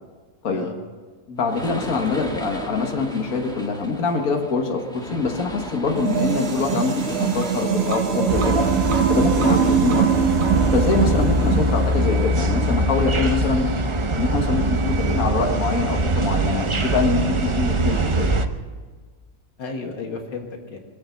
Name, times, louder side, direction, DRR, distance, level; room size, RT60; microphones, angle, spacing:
voice 1, 1.3-8.6 9.1-10.0 10.7-13.7 14.1-18.3, left 4 dB, 55° left, 2 dB, 1.9 m, -24 dB
sound 1, 1.4-12.7, equal, 5° left, 1.4 m, -34 dB
sound 2, 5.9-12.2, right 7 dB, 85° right, 1.9 m, -22 dB
sound 3, 8.3-18.5, right 1 dB, 55° right, 0.3 m, -22 dB
voice 2, 9.4-9.8 11.4-11.7 19.6-20.8, left 4 dB, 90° left, 2 dB, 2.5 m, -33 dB
23.5 x 8.4 x 7.1 m, 1.5 s
omnidirectional pair, 1.9 m